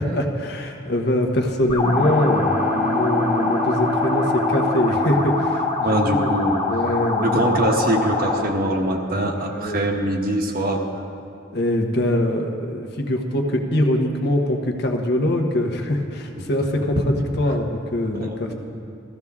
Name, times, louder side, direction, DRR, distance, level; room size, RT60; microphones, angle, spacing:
voice 1, 0.0-6.3 6.7-7.6 9.1-9.8 11.5-18.5, left 1 dB, 60° left, 2 dB, 1.1 m, -23 dB
sound 1, 1.7-8.5, left 3 dB, 35° left, 1.6 m, -24 dB
Bowed string instrument, 1.8-7.0, equal, 10° right, 0.6 m, -28 dB
voice 2, 5.8-6.6 7.2-10.8 16.4-16.5 18.1-18.5, right 1 dB, 50° right, 2 dB, 1.2 m, -23 dB
14.5 x 14.0 x 3.6 m, 2.5 s
head